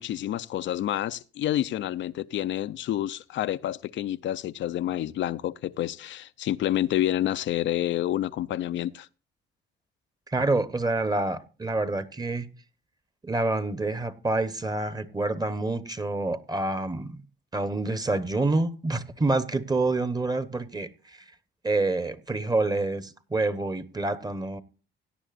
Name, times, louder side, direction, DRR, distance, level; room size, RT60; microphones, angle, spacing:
voice 1, 0.0-9.1, left 12 dB, 70° left, 0.5 m, -28 dB
voice 2, 10.3-12.5 13.2-17.2 17.5-21.2 21.6-24.6, right 2 dB, 20° right, 1.0 m, -27 dB
17.0 x 10.0 x 2.5 m
cardioid pair, 90°, 20 cm